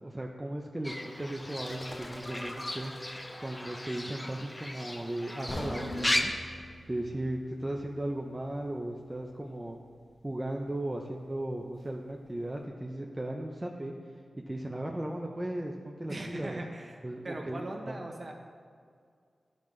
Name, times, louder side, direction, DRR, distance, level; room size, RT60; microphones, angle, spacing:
voice 1, 0.0-2.9 3.4-6.3 6.9-9.8 10.2-13.9 14.5-16.6 17.0-18.0, right 1 dB, 20° right, 0 dB, 0.6 m, -36 dB
Fowl / Bird, 0.8-6.2, left 1 dB, 20° left, 0.6 m, -36 dB
sound 1, 5.5-9.5 9.9-10.1 10.6-10.7, left 1 dB, 70° left, 1.2 m, -43 dB
voice 2, 16.1-18.3, right 2 dB, 40° right, 2 dB, 1.1 m, -40 dB
11.5 x 5.2 x 3.2 m, 2.2 s
cardioid pair, 55°, 0 cm